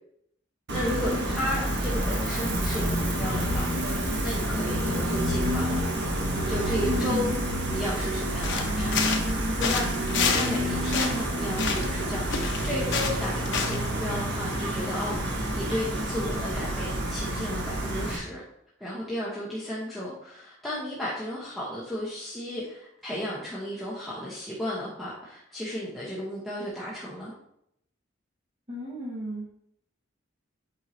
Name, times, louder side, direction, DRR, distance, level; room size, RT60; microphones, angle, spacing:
voice 1, 0.7-5.8 6.5-7.3 7.7-9.0 9.6-9.9 10.3-18.4 18.8-27.3, left 1 dB, ahead, -9 dB, 1.2 m, -34 dB
Gull seagull, 0.7-18.2, right 1 dB, 60° right, 1.4 m, -28 dB
sound 1, 8.4-9.4 9.6-10.6 10.8-12.0 12.3-13.9, left 5 dB, 60° left, 0.9 m, -28 dB
voice 2, 28.7-29.5, left 1 dB, 35° right, -8 dB, 1.6 m, -35 dB
7.8 x 4.8 x 2.8 m, 0.74 s
head